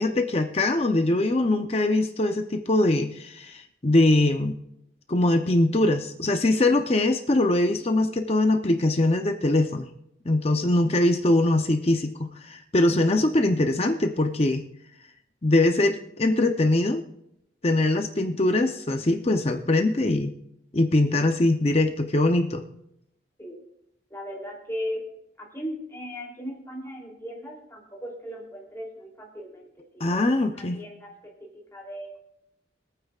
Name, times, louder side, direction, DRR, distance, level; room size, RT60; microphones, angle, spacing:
voice 1, 0.0-4.6 5.1-9.9 10.3-14.6 15.4-17.0 17.6-20.3 20.7-22.6 30.0-30.8, left 2 dB, 35° left, 5 dB, 0.7 m, -22 dB
voice 2, 24.1-25.0 25.4-32.2, equal, 15° left, -2 dB, 3.1 m, -38 dB
24.0 x 9.1 x 2.4 m, 0.77 s
head